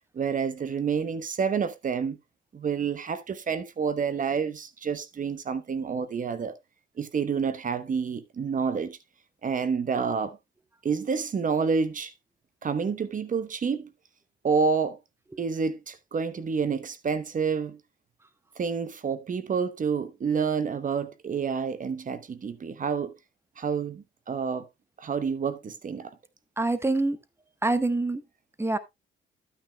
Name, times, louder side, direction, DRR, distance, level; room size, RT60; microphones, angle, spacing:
voice 1, 0.1-2.2 2.5-6.5 7.0-9.0 9.4-10.4 10.8-12.1 12.6-13.9 14.4-15.0 15.4-17.8 18.6-23.1 23.6-24.7 25.0-26.1, right 6 dB, 40° right, 0.9 m, -28 dB
voice 2, 26.6-27.2 27.6-28.2 28.6-28.8, right 2 dB, 10° right, 1.1 m, -25 dB
12.5 x 9.1 x 2.2 m
cardioid pair, 90°, 20 cm